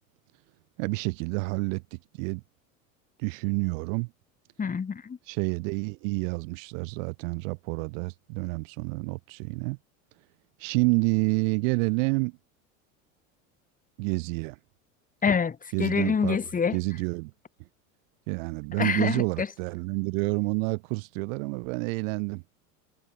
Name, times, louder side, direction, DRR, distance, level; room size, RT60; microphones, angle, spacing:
voice 1, 0.8-2.4 3.2-4.1 5.3-9.8 10.6-12.4 14.0-14.6 15.7-16.4 16.7-17.3 18.3-22.4, right 30 dB, 70° right, 2.6 m, -29 dB
voice 2, 4.6-5.2 15.2-16.8 18.8-19.5, left 6 dB, 20° left, 1.6 m, -26 dB
hypercardioid pair, 95°, 41 cm